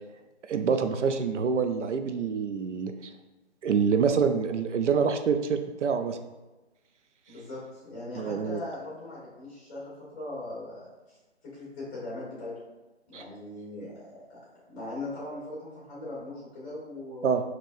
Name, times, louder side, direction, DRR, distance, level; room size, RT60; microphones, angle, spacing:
voice 1, 0.5-2.9 3.6-6.2 8.2-8.6 13.1-13.2 17.2-17.4, right 6 dB, 80° right, 7 dB, 0.5 m, -26 dB
voice 2, 7.3-11.2 11.4-12.5 13.1-14.4 14.7-17.3, left 2 dB, 10° left, -8 dB, 1.2 m, -40 dB
4.6 x 3.0 x 2.5 m, 1.1 s
figure-of-eight pair, 150°, 35 cm